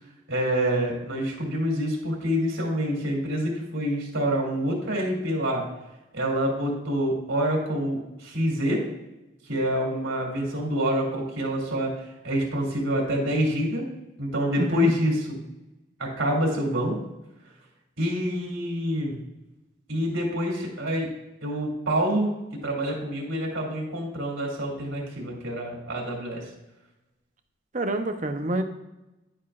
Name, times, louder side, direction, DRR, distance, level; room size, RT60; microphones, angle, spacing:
voice 1, 0.3-5.6 6.1-8.8 9.5-13.8 14.2-15.4 16.0-16.9 18.0-19.1 19.9-21.1 21.4-26.4, equal, 80° right, -2 dB, 2.7 m, -27 dB
voice 2, 14.6-14.9 27.7-28.6, right 1 dB, 40° right, 6 dB, 0.7 m, -27 dB
10.5 x 9.0 x 2.5 m, 0.98 s
head